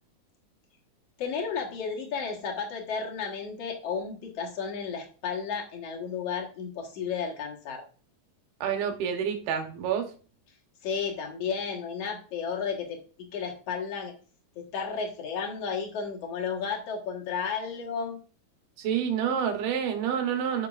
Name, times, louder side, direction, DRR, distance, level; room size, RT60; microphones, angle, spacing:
voice 1, 1.2-7.8 10.8-13.0 13.3-14.1 14.6-18.2, left 6 dB, 55° left, 0 dB, 1.9 m, -33 dB
voice 2, 8.6-10.1 18.8-20.7, right 8 dB, 80° right, 4 dB, 2.9 m, -28 dB
11.5 x 6.1 x 2.5 m, 0.39 s
omnidirectional pair, 4.4 m